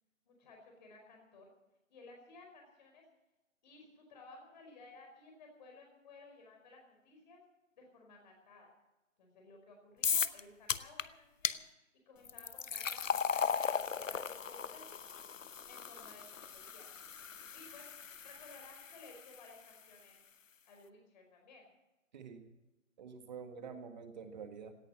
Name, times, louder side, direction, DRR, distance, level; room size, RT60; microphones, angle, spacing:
voice 1, 0.2-1.5 1.9-3.0 3.6-7.4 7.8-8.7 9.2-14.8 15.7-16.9 17.5-17.9 18.2-20.2 20.6-21.6, left 3 dB, 35° left, 2 dB, 5.0 m, -57 dB
sound 1, 10.0-10.4 10.7-11.0 11.4-11.6 12.3-19.4, left 6 dB, 70° left, 0.9 m, -37 dB
voice 2, 22.1-22.4 23.0-24.7, right 6 dB, 35° right, 7 dB, 1.8 m, -47 dB
17.5 x 10.5 x 7.4 m, 1.0 s
figure-of-eight pair, 150°, 40 cm